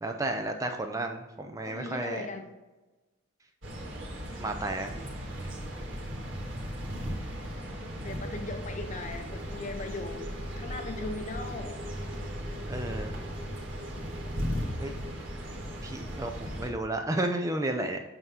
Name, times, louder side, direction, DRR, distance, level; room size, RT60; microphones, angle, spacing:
voice 1, 0.0-2.3 4.4-5.1 12.7-13.2 14.8-14.9 15.8-18.0, right 2 dB, 15° right, 5 dB, 0.4 m, -32 dB
voice 2, 1.6-2.6 5.7-6.0 8.0-11.8, left 2 dB, 35° left, 7 dB, 0.6 m, -39 dB
sound 1, 3.6-16.7, equal, 65° right, 1.7 m, -37 dB
sound 2, 8.7-16.4, equal, 85° right, 1.6 m, -44 dB
8.1 x 3.7 x 5.6 m, 1.2 s
head